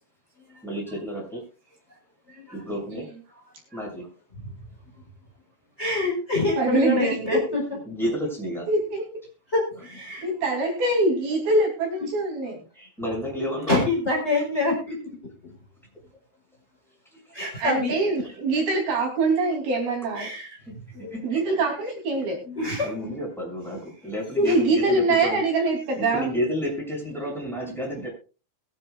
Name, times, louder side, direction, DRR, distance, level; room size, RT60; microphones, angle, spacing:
voice 1, 0.6-1.4 2.5-3.1 3.7-4.1 7.9-8.7 12.7-13.8 14.9-15.0 17.3-17.4 20.7-20.8 21.1-21.4 22.8-25.4 26.0-28.1, equal, ahead, -2 dB, 6.5 m, -31 dB
voice 2, 5.8-7.6 9.5-10.3 13.7-15.0 17.3-17.9 20.2-20.5 20.9-21.1 22.5-22.9 24.4-24.5, left 2 dB, 15° left, 0 dB, 4.2 m, -25 dB
voice 3, 6.6-7.4 8.7-9.1 10.2-12.6 17.6-20.3 21.2-22.4 24.4-26.3, right 2 dB, 65° right, 1 dB, 4.6 m, -24 dB
22.0 x 10.0 x 2.3 m, 0.33 s
omnidirectional pair, 4.6 m